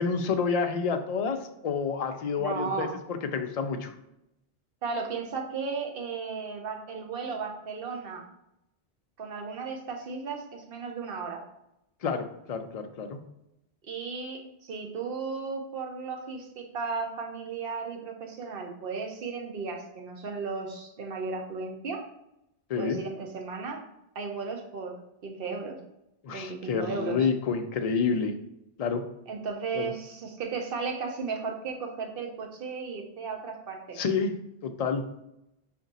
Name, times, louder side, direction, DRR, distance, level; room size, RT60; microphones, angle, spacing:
voice 1, 0.0-3.9 12.0-13.2 22.7-23.0 26.2-28.4 28.8-29.0 29.7-29.9 34.0-34.3 34.6-35.0, left 5 dB, 55° left, 6 dB, 0.4 m, -29 dB
voice 2, 2.4-2.9 4.8-8.2 9.2-11.4 13.8-22.0 22.8-23.8 24.1-25.8 26.3-27.3 29.3-34.0, right 4 dB, 60° right, 2 dB, 0.9 m, -35 dB
4.9 x 2.6 x 4.0 m, 0.84 s
omnidirectional pair, 1.1 m